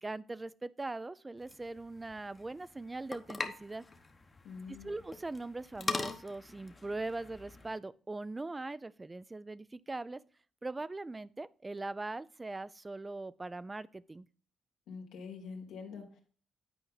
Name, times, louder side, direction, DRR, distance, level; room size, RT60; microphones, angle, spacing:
voice 1, 0.0-3.9 4.7-10.2 10.6-14.3, right 2 dB, 20° right, 0.4 m, -41 dB
sound 1, 1.4-7.8, left 3 dB, 25° left, 1.0 m, -42 dB
voice 2, 4.4-4.9 14.9-16.2, left 5 dB, 80° left, 2.0 m, -45 dB
9.0 x 4.7 x 4.0 m
cardioid pair, 90°, 0 cm